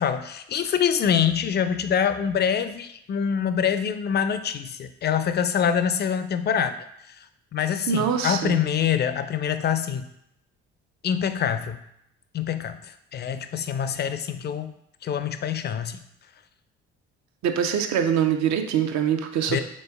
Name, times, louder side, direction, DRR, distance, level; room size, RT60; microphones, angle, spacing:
voice 1, 0.0-6.7 7.1-7.2 7.5-10.1 11.0-11.8 12.3-14.7 15.0-16.0 19.5-19.6, left 8 dB, 35° left, 10 dB, 0.4 m, -25 dB
voice 2, 7.9-8.6 17.4-19.6, right 8 dB, 60° right, 6 dB, 0.7 m, -24 dB
5.2 x 3.7 x 2.3 m, 0.76 s
hypercardioid pair, 55°, 32 cm